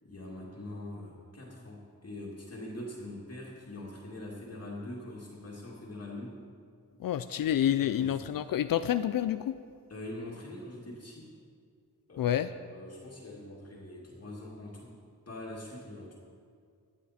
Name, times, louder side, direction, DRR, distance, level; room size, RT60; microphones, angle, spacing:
voice 1, 0.0-6.4 7.8-8.2 9.9-11.4 12.1-12.4 12.7-15.0 15.3-16.2, left 1 dB, 45° left, -4 dB, 2.2 m, -43 dB
voice 2, 7.0-9.6 12.2-12.5, left 11 dB, 80° left, 11 dB, 0.5 m, -28 dB
17.5 x 9.9 x 4.3 m, 2.2 s
wide cardioid pair, 95°, 34 cm